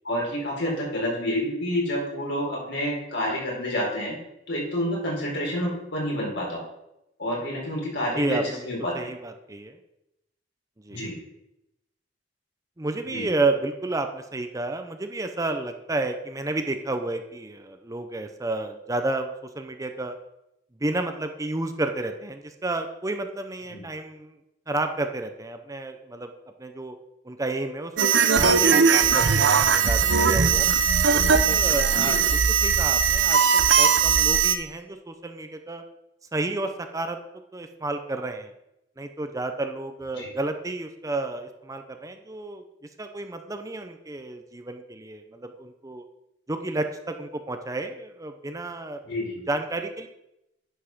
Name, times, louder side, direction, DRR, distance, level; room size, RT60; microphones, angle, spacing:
voice 1, 0.0-4.1 4.5-6.6 7.2-9.1 10.9-11.1 13.1-13.3 23.7-23.8 31.9-32.2 40.1-40.3 49.0-49.4, equal, 70° left, -3 dB, 4.2 m, -29 dB
voice 2, 8.2-8.7 8.9-9.8 10.8-11.0 12.8-19.3 19.5-20.1 20.8-24.4 24.7-26.3 26.6-27.0 27.2-30.7 31.1-35.8 36.3-37.2 37.5-38.5 39.0-42.6 43.0-46.0 46.5-49.0 49.5-50.1, right 2 dB, 20° right, 6 dB, 0.7 m, -31 dB
sound 1, 28.0-34.5, right 6 dB, 90° right, 0.8 m, -19 dB
10.0 x 5.5 x 6.0 m, 0.87 s
head